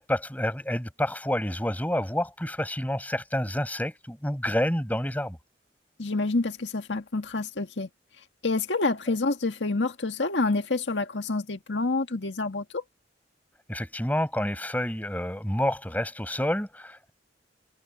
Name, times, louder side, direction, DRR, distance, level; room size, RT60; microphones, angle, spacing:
voice 1, 0.0-5.4 13.7-17.1, left 1 dB, 10° left, 5.1 m, -29 dB
voice 2, 6.0-7.9 8.4-12.8, left 3 dB, 85° left, 1.7 m, -28 dB
head